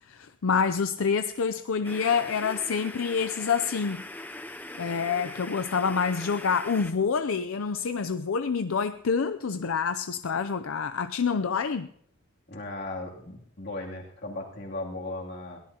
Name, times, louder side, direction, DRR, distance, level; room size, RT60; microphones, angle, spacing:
voice 1, 0.1-4.1 4.8-11.9, left 5 dB, 75° left, 0.5 m, -27 dB
sound 1, 1.8-6.9, left 2 dB, 10° left, 0.6 m, -41 dB
voice 2, 12.5-15.6, left 2 dB, 55° left, 2.9 m, -37 dB
22.5 x 17.0 x 2.9 m
head